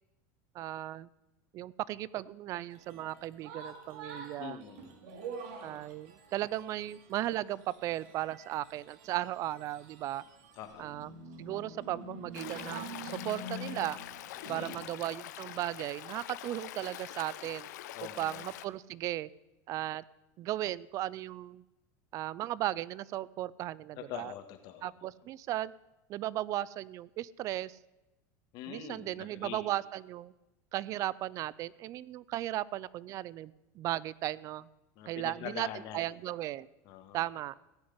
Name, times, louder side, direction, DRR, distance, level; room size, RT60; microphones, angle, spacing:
voice 1, 0.5-1.1 1.5-4.6 5.6-10.2 10.8-11.1 11.4-14.0 14.5-17.7 18.2-19.3 19.7-20.0 20.4-21.6 22.1-24.3 24.8-25.7 26.1-27.8 28.7-30.3 30.7-34.7 35.1-35.7 35.9-36.7 37.1-37.5, right 14 dB, 35° right, 22 dB, 0.4 m, -36 dB
sound 1, 2.7-14.8, right 2 dB, 65° right, 2.6 m, -47 dB
voice 2, 4.4-5.2 10.6-10.9 14.5-14.9 17.9-18.5 24.0-24.9 28.5-29.6 35.0-36.1 36.8-37.2, left 10 dB, 50° left, 6 dB, 1.9 m, -44 dB
Stream, 12.3-18.7, left 14 dB, 90° left, 0.7 m, -45 dB
16.0 x 6.4 x 9.7 m, 1.0 s
supercardioid pair, 150°, 9 cm